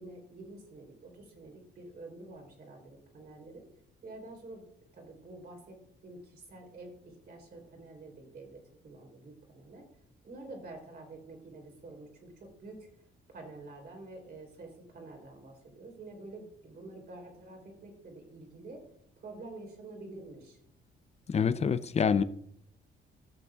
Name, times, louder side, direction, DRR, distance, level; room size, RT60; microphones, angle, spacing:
voice 1, 0.0-3.7 4.0-4.7 4.9-5.8 6.0-9.9 10.2-12.8 13.3-18.8 19.2-20.6, right 2 dB, 55° right, 3.3 m, -48 dB
voice 2, 21.3-22.2, left 6 dB, 35° left, 0.5 m, -26 dB
15.0 x 6.8 x 2.4 m
cardioid pair, 90°, 20 cm